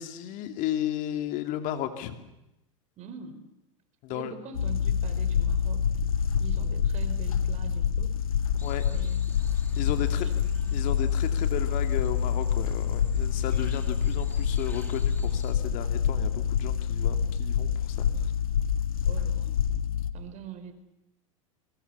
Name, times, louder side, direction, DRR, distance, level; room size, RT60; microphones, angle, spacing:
voice 1, 0.0-2.3 4.0-4.3 8.6-8.8 9.8-10.3 10.7-18.1, left 12 dB, 50° left, 7 dB, 2.8 m, -34 dB
voice 2, 3.0-3.5 4.1-5.9 6.4-8.2 8.9-9.3 9.9-10.8 19.0-19.6 20.1-20.7, right 7 dB, 40° right, 9 dB, 4.6 m, -44 dB
sound 1, 4.5-20.1, left 7 dB, 85° left, 1.4 m, -27 dB
sound 2, 8.6-15.5, left 1 dB, 10° left, 3.0 m, -48 dB
28.0 x 22.5 x 7.0 m, 0.89 s
hypercardioid pair, 95°, 17 cm